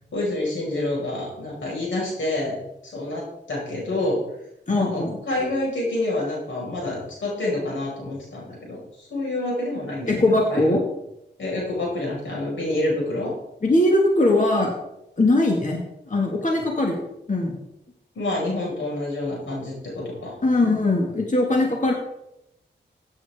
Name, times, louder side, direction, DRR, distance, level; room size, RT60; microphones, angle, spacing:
voice 1, 0.1-2.6 2.8-4.2 4.8-10.2 10.5-10.7 11.4-13.3 18.2-20.3, left 2 dB, 85° left, -3 dB, 5.6 m, -28 dB
voice 2, 4.7-5.2 10.1-10.8 13.6-14.7 15.2-15.8 16.1-17.0 17.3-17.6 20.4-21.9, left 2 dB, 40° left, 0 dB, 2.2 m, -20 dB
15.5 x 9.4 x 3.7 m, 0.85 s
cardioid pair, 50°, 19 cm